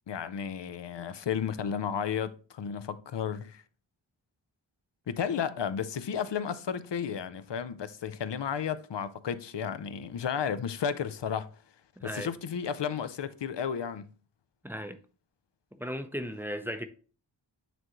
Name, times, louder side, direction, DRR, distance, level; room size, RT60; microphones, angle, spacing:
voice 1, 0.1-3.6 5.1-11.5 12.0-14.1, left 7 dB, 65° left, 0.6 m, -33 dB
voice 2, 12.0-12.3 14.6-15.0 15.7-16.9, equal, 5° right, 0.6 m, -36 dB
9.1 x 3.7 x 3.0 m
wide cardioid pair, 50°, 46 cm